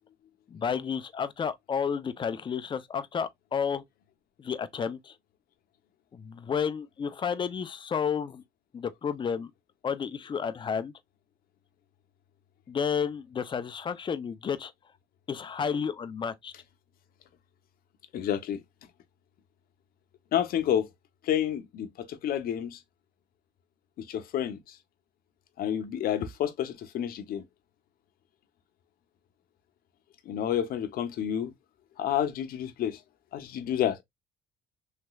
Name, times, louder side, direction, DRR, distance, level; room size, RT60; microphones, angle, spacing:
voice 1, 0.5-3.8 4.4-5.2 6.1-8.4 8.7-9.5 9.8-10.9 12.7-14.7 15.3-16.5, left 7 dB, 30° left, 0.5 m, -31 dB
voice 2, 18.1-18.6 20.3-20.9 21.2-22.8 24.1-24.7 25.6-27.4 30.3-31.5 32.0-33.0 33.3-34.0, left 10 dB, 60° left, 0.7 m, -29 dB
3.2 x 3.0 x 2.3 m
cardioid pair, 110°, 17 cm